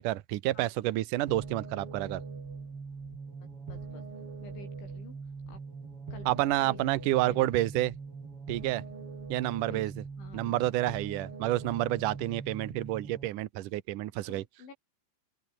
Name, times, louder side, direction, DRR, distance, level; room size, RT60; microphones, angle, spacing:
voice 1, 0.0-2.2 6.3-7.9 8.5-8.8 9.3-9.9 10.3-14.4, right 16 dB, 85° right, 1.8 m, -29 dB
sound 1, 1.3-13.3, right 4 dB, 30° right, 4.3 m, -42 dB
voice 2, 3.7-4.0 4.4-5.2 5.5-5.6 6.1-6.3 6.7-6.8 7.3-7.7 9.7-9.9 10.2-10.6 14.3-14.7, left 5 dB, 80° left, 10.0 m, -50 dB
open air
omnidirectional pair, 5.3 m